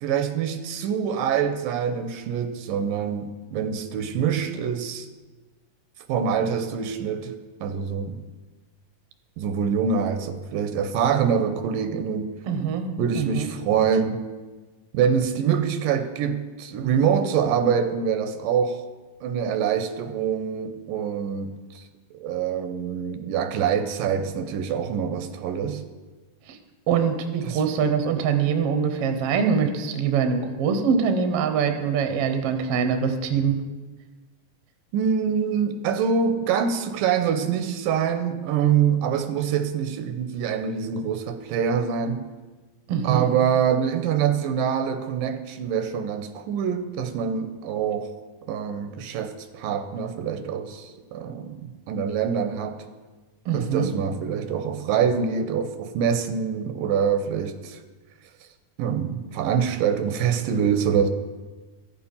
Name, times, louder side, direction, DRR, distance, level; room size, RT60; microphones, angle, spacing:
voice 1, 0.0-5.1 6.1-8.2 9.4-12.4 13.0-14.2 14.9-18.8 19.2-21.8 22.1-25.8 27.4-27.6 34.9-42.3 43.0-48.1 48.5-52.8 53.5-57.8 58.8-61.1, right 7 dB, 85° right, 2.3 m, -25 dB
voice 2, 12.5-12.8 13.1-13.5 26.5-26.6 26.9-33.6 42.9-43.2 53.4-53.9, right 6 dB, 70° right, 1.5 m, -23 dB
13.5 x 7.0 x 5.5 m
omnidirectional pair, 3.9 m